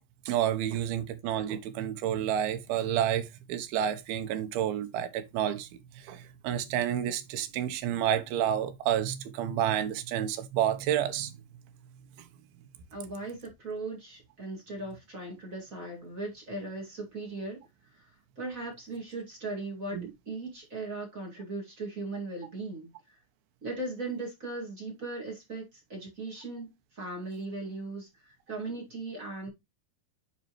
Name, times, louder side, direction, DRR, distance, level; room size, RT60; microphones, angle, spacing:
voice 1, 0.3-5.7 5.9-11.3 12.2-12.3 19.9-20.1, right 10 dB, 90° right, 2.8 m, -30 dB
voice 2, 12.9-17.6 18.0-18.1 18.3-20.0 20.2-23.2 23.6-26.7 26.9-29.5, right 2 dB, 30° right, 1.9 m, -38 dB
9.6 x 4.2 x 3.0 m
omnidirectional pair, 4.3 m